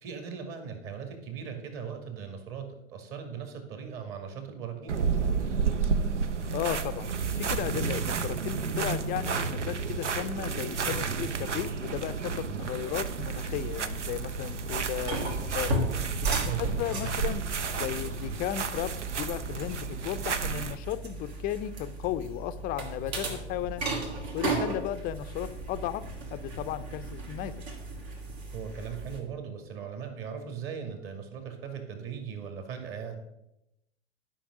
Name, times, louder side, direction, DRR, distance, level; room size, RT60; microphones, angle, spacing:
voice 1, 0.0-5.0 12.5-12.7 16.4-16.8 28.5-33.2, right 7 dB, 40° right, 5 dB, 2.3 m, -39 dB
sound 1, 4.9-20.8, right 5 dB, 80° right, 0.8 m, -31 dB
voice 2, 6.5-15.7 16.2-17.4 17.7-23.8 24.3-26.0 26.3-27.5, left 12 dB, 25° left, 13 dB, 0.5 m, -35 dB
sound 2, 14.3-29.2, right 2 dB, 65° right, 2.7 m, -36 dB
11.5 x 5.8 x 6.2 m, 0.86 s
figure-of-eight pair, 95°, 35 cm